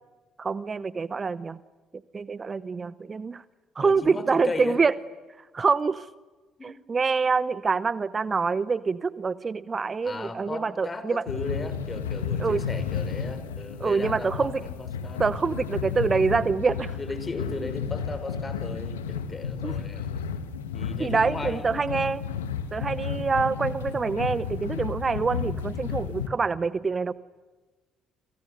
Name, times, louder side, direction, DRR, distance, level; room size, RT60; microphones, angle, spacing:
voice 1, 0.4-1.6 2.1-3.4 3.8-4.9 5.5-6.1 6.6-11.2 12.4-12.6 13.8-14.6 15.2-17.0 19.6-19.7 21.0-22.2 22.7-27.1, right 4 dB, 35° right, 17 dB, 0.9 m, -26 dB
voice 2, 3.8-4.8 6.6-6.7 10.0-15.5 15.9-16.0 17.0-20.2 20.7-21.8, left 3 dB, 30° left, 10 dB, 5.5 m, -36 dB
sound 1, 11.3-26.3, left 7 dB, 85° left, 1.7 m, -32 dB
30.0 x 27.0 x 6.8 m, 1.2 s
hypercardioid pair, 50°, 0 cm